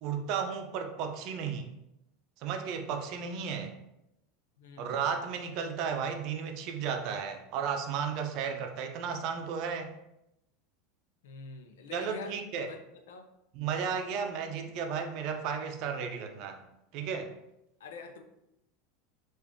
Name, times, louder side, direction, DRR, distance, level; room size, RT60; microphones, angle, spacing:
voice 1, 0.0-1.7 2.4-3.7 4.8-9.9 11.9-12.7 13.5-16.6 16.9-17.3, right 6 dB, 55° right, 5 dB, 0.5 m, -34 dB
voice 2, 4.6-5.0 8.5-8.6 11.2-12.4 12.7-12.8 13.1-13.3 17.8-18.2, left 4 dB, 85° left, 5 dB, 0.5 m, -45 dB
3.5 x 2.5 x 3.6 m, 0.87 s
supercardioid pair, 110°, 0 cm